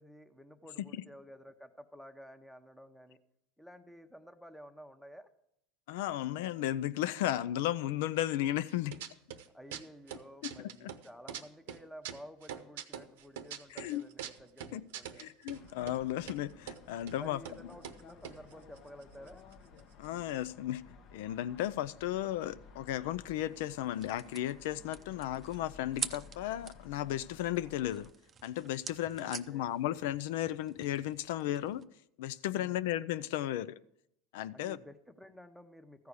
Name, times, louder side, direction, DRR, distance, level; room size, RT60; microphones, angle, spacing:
voice 1, 0.0-3.2 3.6-5.3 9.5-15.3 17.1-19.4 29.2-29.7 32.5-32.8 34.5-36.1, equal, 5° left, 9 dB, 0.9 m, -52 dB
voice 2, 5.9-9.0 10.4-10.9 13.7-14.1 14.7-14.8 15.2-17.4 20.0-20.8 21.1-28.1 28.4-31.8 32.2-33.8 34.3-34.8, left 13 dB, 75° left, 17 dB, 0.4 m, -35 dB
sound 1, 8.7-9.5 9.7-11.4 11.7-15.6 15.9-16.0 16.2-16.8 17.1-17.2 17.4-17.6 17.8-19.5 19.8-19.9 20.0-20.4, right 9 dB, 85° right, 0.8 m, -43 dB
sound 2, 15.5-28.1, left 5 dB, 55° left, 0.9 m, -56 dB
sound 3, 23.4-31.8, right 6 dB, 30° right, 0.6 m, -47 dB
14.0 x 4.7 x 8.3 m, 0.79 s
supercardioid pair, 110°, 0 cm